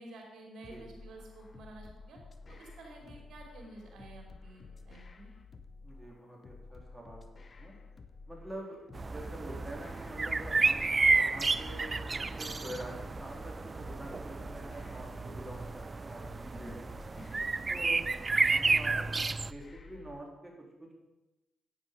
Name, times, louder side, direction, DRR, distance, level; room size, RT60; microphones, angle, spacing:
voice 1, 0.0-2.2 2.5-5.3 16.4-16.8 17.1-17.4, right 2 dB, 65° right, 1 dB, 3.4 m, -50 dB
sound 1, 0.6-20.2, left 3 dB, 45° left, 0.9 m, -52 dB
voice 2, 5.8-7.8 8.3-12.0 12.3-16.3 16.6-17.0 17.7-18.0 18.5-20.5 20.8-20.9, right 1 dB, 15° right, -1 dB, 3.6 m, -46 dB
sound 2, 8.9-19.5, right 3 dB, 35° right, 0.4 m, -31 dB
9.8 x 9.3 x 5.2 m, 1.0 s
hypercardioid pair, 45°, 0 cm